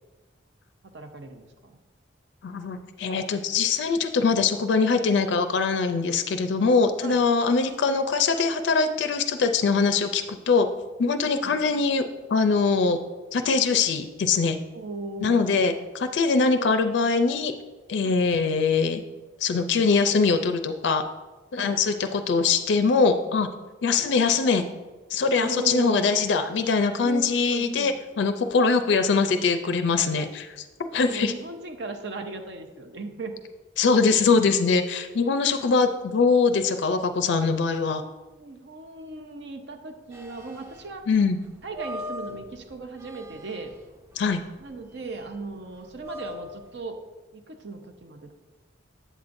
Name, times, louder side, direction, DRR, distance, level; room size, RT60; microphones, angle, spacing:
voice 1, 0.8-1.8 7.0-7.2 11.4-11.5 14.7-15.6 18.0-18.2 21.6-21.7 25.4-26.3 27.0-28.0 30.0-30.3 31.1-33.4 38.3-41.0 41.6-43.7 44.6-47.0 47.3-48.3, right 3 dB, 60° right, 5 dB, 0.6 m, -37 dB
voice 2, 2.4-10.7 11.0-12.0 12.3-13.0 13.3-14.6 15.2-17.5 17.9-19.0 19.4-21.0 21.5-23.5 23.8-24.6 25.1-30.4 30.9-31.3 33.8-38.0 41.1-41.4 44.2-44.4, left 4 dB, 65° left, 8 dB, 0.4 m, -22 dB
sound 1, 40.1-46.8, left 1 dB, 15° right, 0.5 m, -42 dB
8.2 x 7.2 x 2.6 m, 1.2 s
head